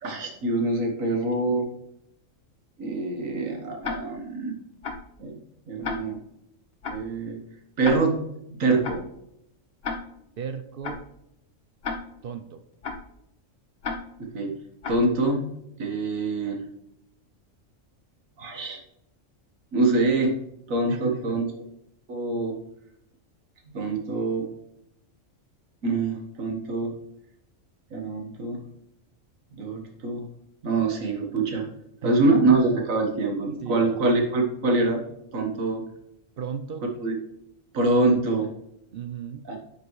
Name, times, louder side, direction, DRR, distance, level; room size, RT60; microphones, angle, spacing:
voice 1, 0.0-1.7 2.8-4.6 5.2-5.4 5.7-6.2 6.9-7.4 7.8-8.2 8.5-9.0 14.2-14.5 14.9-15.5 15.8-16.6 18.4-18.8 19.7-20.4 20.7-21.5 22.1-22.5 23.7-24.5 25.8-26.9 27.9-28.6 29.6-30.3 30.6-31.7 32.0-35.0 35.3-35.8 37.0-37.2 37.7-38.5 39.5-39.6, right 2 dB, 80° right, 3 dB, 1.8 m, -25 dB
Tick-tock, 3.8-4.0 4.8-5.0 5.8-6.0 6.8-7.0 7.8-8.0 8.8-9.0 9.8-10.0 10.8-11.0 11.8-12.0 12.8-13.0 13.8-14.0 14.8-15.0, left 4 dB, 50° left, 1.1 m, -31 dB
voice 2, 10.4-11.0 12.2-12.6 20.9-21.4 32.0-32.3 33.6-34.0 36.4-36.8 38.9-39.5, right 7 dB, 60° right, 9 dB, 0.6 m, -35 dB
9.8 x 5.3 x 3.1 m, 0.81 s
omnidirectional pair, 1.4 m